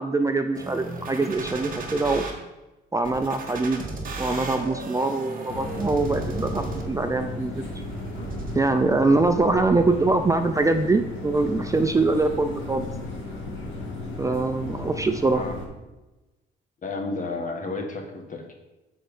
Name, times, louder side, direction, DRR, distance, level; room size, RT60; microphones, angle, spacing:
voice 1, 0.0-2.2 2.9-3.8 4.2-7.6 8.5-12.8 14.2-15.4, right 3 dB, 15° right, 6 dB, 0.4 m, -23 dB
sound 1, 0.5-2.3 3.0-7.1 7.5-8.5, right 3 dB, 45° right, 1.5 m, -35 dB
sound 2, 5.5-15.7, left 2 dB, 80° left, 1.5 m, -35 dB
voice 2, 16.8-18.5, left 3 dB, 40° left, 2 dB, 1.4 m, -32 dB
6.3 x 4.4 x 5.1 m, 1.1 s
cardioid pair, 90°, 20 cm